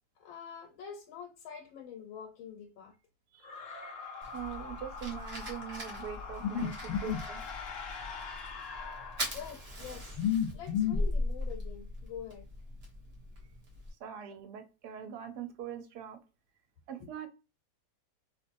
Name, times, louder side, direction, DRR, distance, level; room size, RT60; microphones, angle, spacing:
voice 1, 0.2-2.9 3.7-3.9 6.4-7.2 9.3-12.5, left 8 dB, 80° left, 1.5 m, -37 dB
sound 1, 3.4-9.8, left 4 dB, 65° left, 0.8 m, -44 dB
Fire, 4.2-13.9, left 1 dB, 45° right, 0.8 m, -40 dB
voice 2, 4.3-7.4 14.0-16.2 16.9-17.3, right 9 dB, 70° right, 1.0 m, -42 dB
3.0 x 3.0 x 2.5 m
omnidirectional pair, 2.1 m